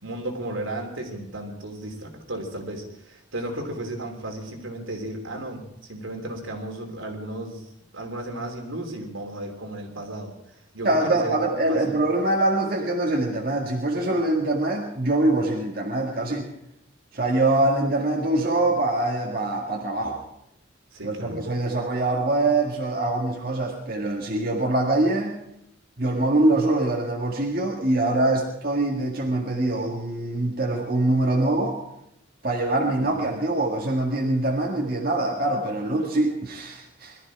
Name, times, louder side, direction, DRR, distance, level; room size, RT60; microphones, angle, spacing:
voice 1, 0.0-7.6 7.9-10.3 10.7-12.0 20.9-21.4 33.0-33.2, right 1 dB, 80° right, 2 dB, 3.3 m, -34 dB
voice 2, 10.8-16.5 17.1-20.2 21.0-25.3 26.0-31.8 32.4-37.2, right 2 dB, 45° right, -1 dB, 1.9 m, -24 dB
21.5 x 13.5 x 4.8 m, 0.80 s
head